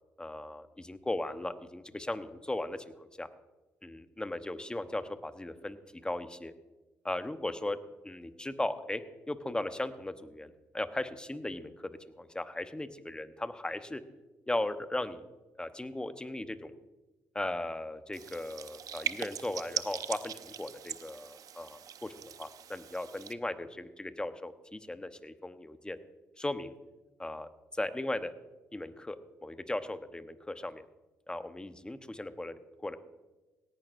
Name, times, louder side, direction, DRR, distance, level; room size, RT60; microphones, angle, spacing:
voice 1, 0.2-3.3 3.8-6.5 7.0-14.0 14.5-15.2 15.6-16.7 17.3-26.0 26.4-26.7 27.2-28.3 28.7-29.2 29.4-30.9 31.3-33.0, left 1 dB, 15° left, 10 dB, 1.0 m, -37 dB
sound 1, 18.1-23.3, right 9 dB, 60° right, 0.6 m, -40 dB
17.5 x 11.0 x 2.6 m, 1.1 s
supercardioid pair, 55°, 7 cm